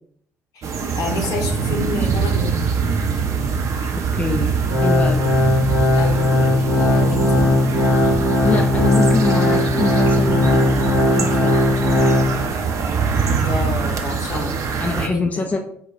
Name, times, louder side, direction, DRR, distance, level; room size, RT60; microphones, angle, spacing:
sound 1, 0.6-15.1, right 5 dB, 45° right, 0.5 m, -23 dB
voice 1, 0.9-2.7 6.0-6.3 6.7-7.5 13.2-14.5 14.8-15.5, left 2 dB, 50° left, 1 dB, 0.9 m, -28 dB
voice 2, 4.0-4.5 4.8-5.3 8.4-11.7 14.3-15.6, left 3 dB, 20° left, 3 dB, 0.4 m, -25 dB
Organ, 4.7-12.7 13.1-13.2 13.9-14.0, left 1 dB, 85° right, 0.7 m, -18 dB
4.3 x 2.2 x 4.1 m, 0.68 s
figure-of-eight pair, 45°, 7 cm